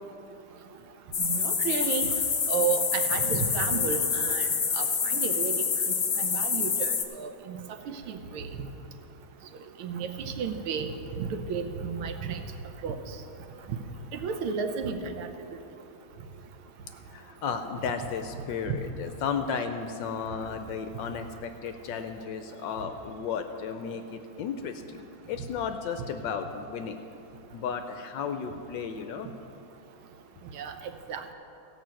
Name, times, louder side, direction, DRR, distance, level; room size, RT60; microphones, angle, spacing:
sound 1, 1.1-7.0, left 6 dB, 50° left, 1.0 m, -27 dB
voice 1, 1.2-2.1 2.5-4.5 4.7-4.9 5.1-5.5 6.2-7.6 8.1-8.5 9.8-10.1 10.4-10.9 11.2-12.4 12.8-12.9 13.7-13.8 14.1-15.3 30.5-30.7 31.1-31.3, right 6 dB, 75° right, 7 dB, 1.6 m, -32 dB
voice 2, 17.1-27.0 27.5-29.3, left 6 dB, 70° left, 7 dB, 1.2 m, -34 dB
15.5 x 5.7 x 7.6 m, 2.9 s
omnidirectional pair, 2.3 m